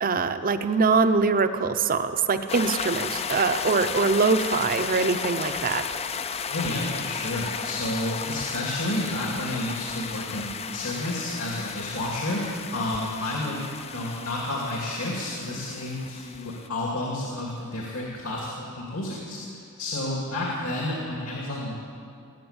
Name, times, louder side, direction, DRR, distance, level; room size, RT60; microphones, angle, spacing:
voice 1, 0.0-5.8, right 4 dB, 40° right, 9 dB, 0.7 m, -23 dB
sound 1, 2.5-16.7, left 6 dB, 30° left, 0.5 m, -34 dB
voice 2, 6.5-21.7, left 1 dB, 70° left, -2 dB, 2.4 m, -31 dB
19.5 x 7.9 x 8.8 m, 2.5 s
head